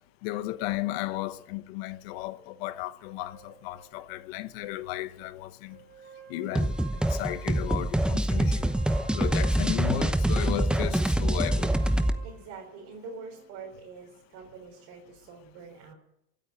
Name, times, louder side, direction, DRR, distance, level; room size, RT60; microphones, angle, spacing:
voice 1, 0.2-5.8 6.3-6.8 7.1-8.7 9.1-11.8, left 15 dB, 75° left, 1.1 m, -34 dB
sound 1, 3.3-5.3 5.7-10.5 11.2-13.8, right 5 dB, 30° right, 4.8 m, -51 dB
sound 2, 6.5-12.2, right 1 dB, 5° right, 0.8 m, -25 dB
voice 2, 12.2-16.0, right 5 dB, 55° right, 4.2 m, -45 dB
23.5 x 9.2 x 6.3 m
supercardioid pair, 145°, 30 cm